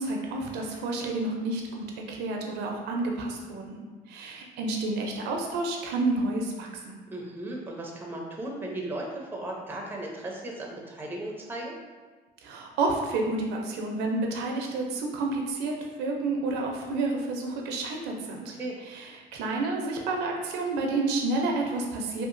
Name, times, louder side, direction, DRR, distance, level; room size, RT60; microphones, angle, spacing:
voice 1, 0.0-7.0 12.4-18.6 18.8-22.3, right 2 dB, 85° right, 1 dB, 0.5 m, -30 dB
voice 2, 7.1-11.7 18.5-18.7, right 1 dB, 10° right, -1 dB, 0.5 m, -36 dB
2.8 x 2.4 x 2.5 m, 1.3 s
cardioid pair, 110°, 17 cm